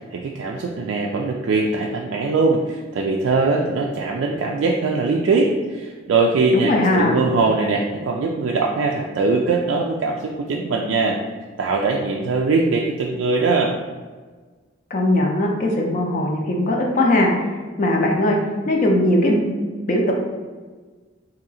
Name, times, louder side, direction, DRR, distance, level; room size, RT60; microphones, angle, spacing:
voice 1, 0.1-11.2 11.6-13.7, right 3 dB, 90° right, 0 dB, 0.3 m, -21 dB
voice 2, 6.5-7.2 14.9-18.4 18.7-19.6 19.9-20.1, left 1 dB, 40° left, 0 dB, 0.4 m, -19 dB
2.8 x 2.7 x 4.0 m, 1.4 s
head